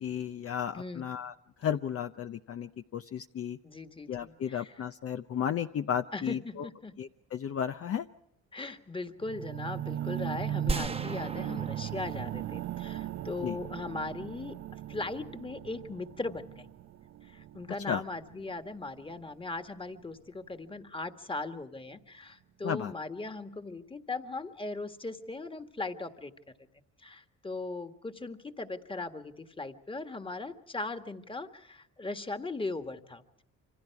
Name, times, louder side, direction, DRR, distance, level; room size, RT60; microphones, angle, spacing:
voice 1, 0.0-3.6 4.1-6.7 7.0-8.1 13.4-13.6 17.9-18.0 22.6-22.9, left 8 dB, 50° left, 8 dB, 0.7 m, -34 dB
voice 2, 0.7-1.1 3.6-4.7 6.1-7.0 8.5-14.6 14.9-16.7 17.2-26.3 27.0-33.4, left 3 dB, 15° left, 8 dB, 1.7 m, -39 dB
sound 1, 9.2-19.3 20.0-20.1, right 12 dB, 65° right, 0.7 m, -38 dB
sound 2, 10.7-13.6, right 3 dB, 20° right, 1.1 m, -37 dB
27.5 x 25.0 x 4.7 m, 0.81 s
cardioid pair, 90°, 30 cm